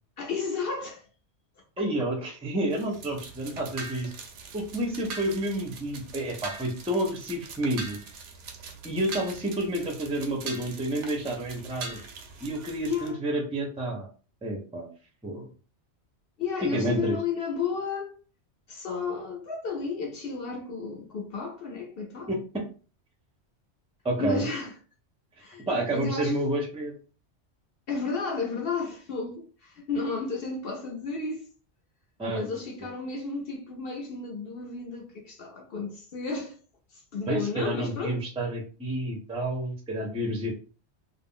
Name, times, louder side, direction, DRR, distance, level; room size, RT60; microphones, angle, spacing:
voice 1, 0.2-1.0 1.8-1.9 12.8-13.2 16.4-18.2 18.7-22.3 24.2-24.7 25.4-25.6 25.9-26.3 27.9-31.5 32.3-36.6 36.9-38.2, left 4 dB, 65° left, 0.7 m, -32 dB
voice 2, 1.8-4.1 4.5-8.0 8.8-12.0 12.4-14.1 14.4-14.9 15.2-15.5 16.7-17.2 22.3-22.4 24.0-24.5 25.7-26.9 32.2-32.6 37.3-40.5, right 1 dB, 10° right, 0.4 m, -29 dB
sound 1, 2.7-13.1, right 4 dB, 90° right, 0.9 m, -42 dB
2.4 x 2.0 x 3.6 m
omnidirectional pair, 1.2 m